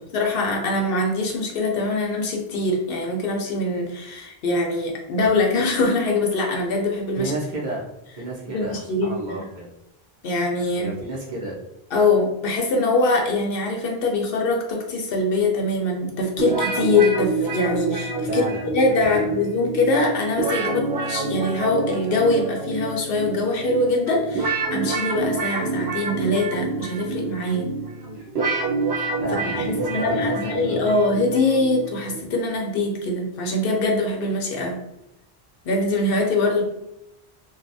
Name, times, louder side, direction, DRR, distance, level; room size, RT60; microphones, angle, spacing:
voice 1, 0.1-7.3 8.5-9.4 10.2-10.9 11.9-18.5 18.7-27.7 29.4-34.8 35.6-36.6, left 2 dB, 65° left, 1 dB, 0.7 m, -23 dB
voice 2, 7.2-7.8 8.2-9.7 10.8-11.6 18.3-18.8 19.0-19.4 29.2-30.8, right 2 dB, 50° right, -5 dB, 0.8 m, -31 dB
sound 1, 16.4-32.3, right 3 dB, 70° right, 1.0 m, -27 dB
3.1 x 2.2 x 2.6 m, 0.85 s
omnidirectional pair, 1.1 m